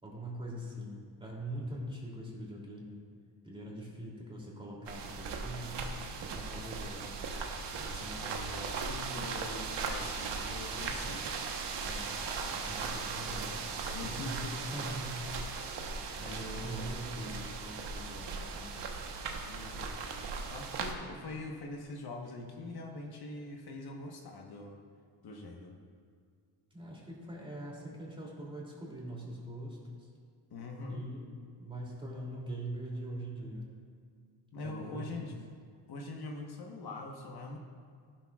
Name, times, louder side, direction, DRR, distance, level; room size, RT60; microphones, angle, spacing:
voice 1, 0.0-3.0 3.4-5.8 6.2-7.2 8.0-8.3 11.8-15.2 16.2-18.7 26.7-30.1 30.9-31.3 31.6-33.7 34.6-35.4, right 1 dB, 10° right, -3 dB, 2.8 m, -43 dB
sound 1, 4.9-20.9, right 4 dB, 75° right, 1.2 m, -38 dB
voice 2, 7.7-11.3 13.9-14.6 15.9-16.9 19.4-19.9 20.5-24.8 25.2-25.8 30.5-31.0 34.5-35.3 35.9-37.6, left 2 dB, 60° left, 1 dB, 1.3 m, -43 dB
14.5 x 12.0 x 2.4 m, 2.1 s
cardioid pair, 115°, 43 cm